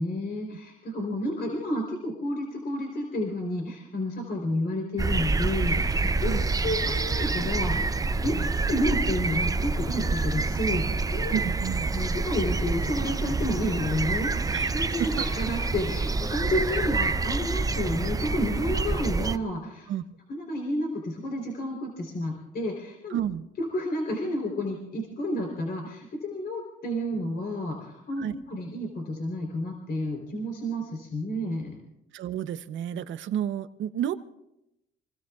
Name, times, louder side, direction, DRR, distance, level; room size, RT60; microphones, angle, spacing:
voice 1, 0.0-6.4 6.6-11.4 11.9-19.9 20.3-23.2 23.6-31.8, left 1 dB, 55° left, 0 dB, 3.6 m, -31 dB
sound 1, 5.0-19.4, right 3 dB, 20° right, 0.5 m, -27 dB
voice 2, 11.3-11.9 14.5-14.7 15.0-15.1 19.9-20.0 23.1-23.5 28.2-28.4 32.1-34.1, right 10 dB, 75° right, 12 dB, 0.8 m, -31 dB
27.0 x 20.5 x 2.4 m, 0.86 s
cardioid pair, 90°, 20 cm